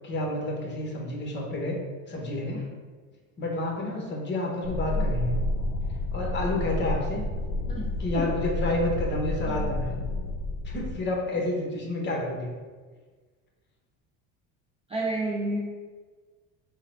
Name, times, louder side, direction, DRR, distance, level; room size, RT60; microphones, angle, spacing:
voice 1, 0.0-1.8 2.1-2.7 3.4-5.4 6.1-7.2 8.0-9.9 10.6-12.5, left 1 dB, 30° left, -1 dB, 1.0 m, -29 dB
sound 1, 4.6-11.0, left 2 dB, 50° left, 0.4 m, -30 dB
voice 2, 7.7-8.3 9.5-9.7 14.9-15.8, right 1 dB, 20° right, -3 dB, 0.4 m, -31 dB
3.7 x 2.1 x 4.1 m, 1.4 s
cardioid pair, 115°, 35 cm